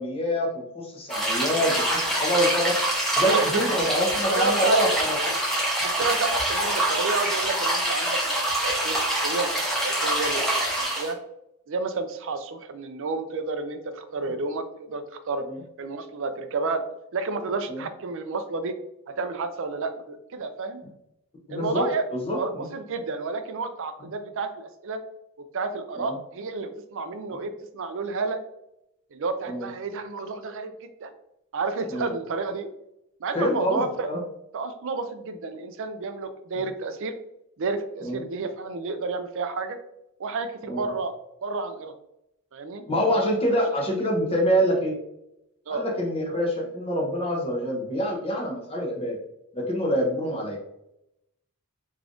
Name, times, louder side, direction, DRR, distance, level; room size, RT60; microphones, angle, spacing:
voice 1, 0.0-2.7 3.1-5.2 15.4-15.6 17.7-17.8 21.5-22.7 24.0-24.1 26.0-26.1 29.5-29.7 31.9-32.1 33.3-34.2 38.0-38.2 40.7-40.9 42.9-45.0 45.7-49.2 49.5-50.6, equal, 25° left, -1 dB, 0.9 m, -26 dB
sound 1, 1.1-11.1, right 1 dB, ahead, 0.9 m, -25 dB
voice 2, 3.2-3.6 4.3-4.8 5.8-11.2 11.7-15.4 15.8-16.8 17.1-18.7 19.1-20.8 21.5-22.1 22.3-25.0 25.5-28.4 29.1-31.1 31.5-32.7 33.2-34.1 34.5-37.1 37.6-39.8 40.2-41.2 41.4-41.9 42.5-42.8 45.7-45.8, right 3 dB, 60° right, 9 dB, 0.4 m, -31 dB
3.6 x 3.4 x 2.5 m, 0.83 s
head